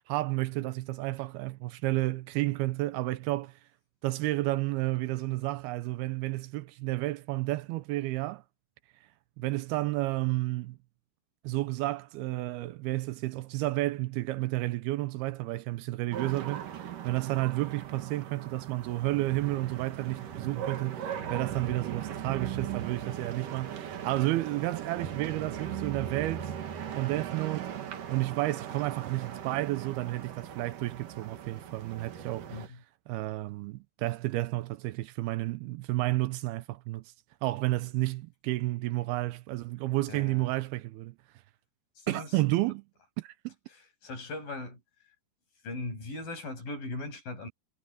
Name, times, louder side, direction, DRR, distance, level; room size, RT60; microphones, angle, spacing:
voice 1, 0.1-3.6 4.0-8.4 9.4-10.8 11.4-26.5 27.0-27.7 28.1-32.7 33.1-37.0 37.4-41.2 42.1-42.8 43.2-43.5, right 18 dB, 80° right, 2.5 m, -31 dB
sound 1, 16.1-32.7, right 9 dB, 60° right, 3.2 m, -39 dB
voice 2, 32.5-32.8 40.1-40.5 42.1-42.3 44.0-44.8 45.6-47.5, left 2 dB, 55° left, 9.5 m, -38 dB
omnidirectional pair, 4.8 m